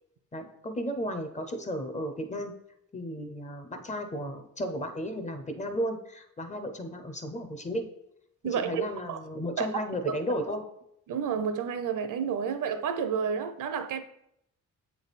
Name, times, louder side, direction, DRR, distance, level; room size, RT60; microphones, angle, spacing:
voice 1, 0.3-2.5 2.9-7.9 8.5-10.7, equal, 20° left, 0.6 m, -34 dB
voice 2, 8.4-9.2 9.6-9.7 10.1-10.2 11.1-14.0, right 7 dB, 70° right, 0.6 m, -30 dB
7.6 x 3.4 x 4.0 m
cardioid pair, 140°, 33 cm